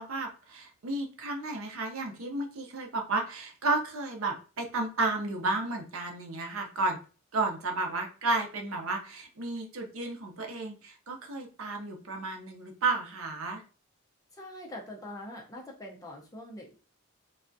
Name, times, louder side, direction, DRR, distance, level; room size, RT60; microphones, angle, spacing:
voice 1, 0.0-7.0 7.3-13.6, right 3 dB, 70° right, 2 dB, 0.6 m, -32 dB
voice 2, 14.3-16.7, left 1 dB, 15° left, -1 dB, 0.5 m, -43 dB
3.3 x 2.3 x 2.5 m, 0.36 s
head